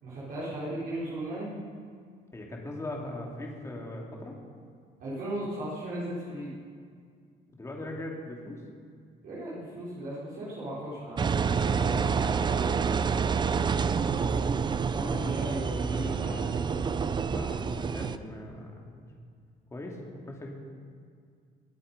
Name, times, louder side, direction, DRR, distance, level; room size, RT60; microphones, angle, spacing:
voice 1, 0.0-1.6 5.0-6.5 9.2-13.0 14.9-16.7, right 1 dB, 60° right, -9 dB, 4.2 m, -36 dB
voice 2, 2.3-4.3 7.6-8.6 13.3-14.2 17.3-19.1 19.7-20.5, left 1 dB, 15° left, -1 dB, 2.7 m, -40 dB
Engine, 11.2-18.2, right 6 dB, 25° right, 0.5 m, -28 dB
21.0 x 8.4 x 5.3 m, 2.1 s
cardioid pair, 110°, 17 cm